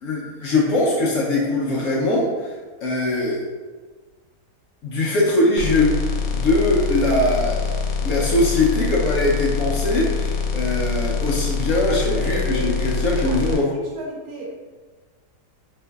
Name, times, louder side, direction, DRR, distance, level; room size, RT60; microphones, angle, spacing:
voice 1, 0.0-2.5 2.8-3.4 4.8-7.6 8.0-13.7, left 2 dB, 65° left, -5 dB, 0.8 m, -21 dB
sound 1, 5.6-13.6, left 5 dB, 85° left, 1.1 m, -24 dB
voice 2, 12.0-12.7 13.0-14.6, right 2 dB, 85° right, -2 dB, 1.3 m, -32 dB
4.5 x 2.6 x 2.3 m, 1.4 s
omnidirectional pair, 1.7 m